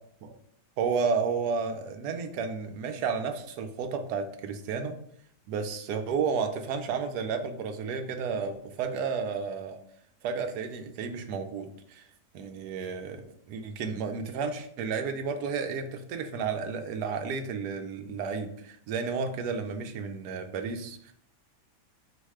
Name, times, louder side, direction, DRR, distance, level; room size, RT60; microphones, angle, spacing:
voice 1, 0.8-5.0 5.5-9.8 10.2-12.0 12.3-21.1, right 5 dB, 75° right, 7 dB, 1.1 m, -32 dB
4.8 x 2.1 x 4.7 m, 0.67 s
omnidirectional pair, 1.8 m